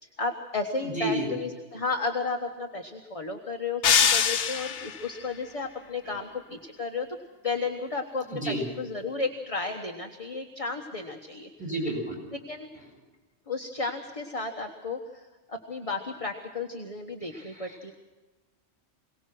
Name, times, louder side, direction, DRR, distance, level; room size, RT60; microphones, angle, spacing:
voice 1, 0.0-7.1 7.4-11.5 12.5-12.7 13.5-17.9, left 3 dB, 30° left, 3 dB, 1.4 m, -33 dB
voice 2, 0.8-1.3 8.3-8.6 11.6-12.2 17.3-17.7, right 1 dB, 5° right, -2 dB, 7.3 m, -31 dB
sound 1, 3.8-5.1, left 7 dB, 85° left, 1.2 m, -23 dB
23.0 x 18.5 x 6.1 m, 1.2 s
omnidirectional pair, 1.2 m